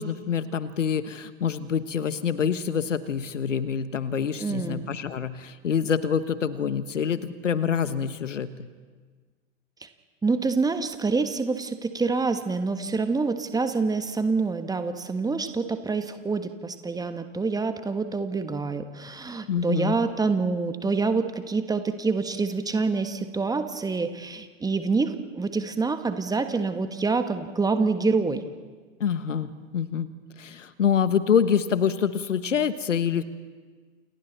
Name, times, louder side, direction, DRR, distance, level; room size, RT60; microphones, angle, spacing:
voice 1, 0.0-8.7 19.5-20.0 29.0-30.1 30.4-33.2, left 7 dB, 75° left, 14 dB, 1.3 m, -26 dB
voice 2, 4.4-4.8 10.2-28.4, right 4 dB, 10° right, 9 dB, 1.4 m, -26 dB
29.5 x 28.5 x 4.1 m, 1.5 s
figure-of-eight pair, 95°, 38 cm